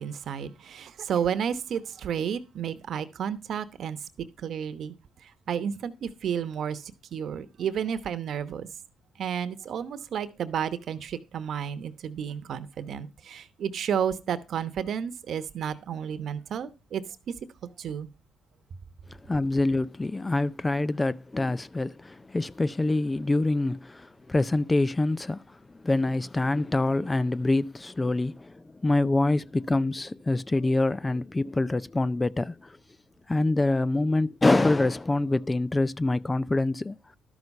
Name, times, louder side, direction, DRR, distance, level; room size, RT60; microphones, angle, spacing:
voice 1, 0.0-4.9 5.2-8.7 9.2-17.3 17.8-18.1, right 8 dB, 65° right, 1.1 m, -32 dB
voice 2, 19.3-25.4 25.8-28.5 28.8-32.7 33.3-37.0, left 2 dB, 20° left, 0.5 m, -25 dB
12.5 x 6.2 x 5.4 m
cardioid pair, 90°, 0 cm